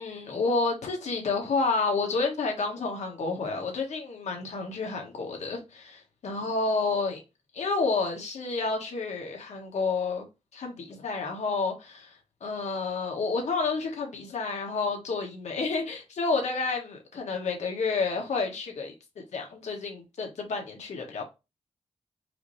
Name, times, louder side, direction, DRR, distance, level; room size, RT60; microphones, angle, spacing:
voice 1, 0.0-7.2 7.5-10.2 10.5-18.9 19.3-21.2, left 4 dB, 80° left, 1.3 m, -30 dB
4.8 x 2.7 x 3.2 m
wide cardioid pair, 115°, 12 cm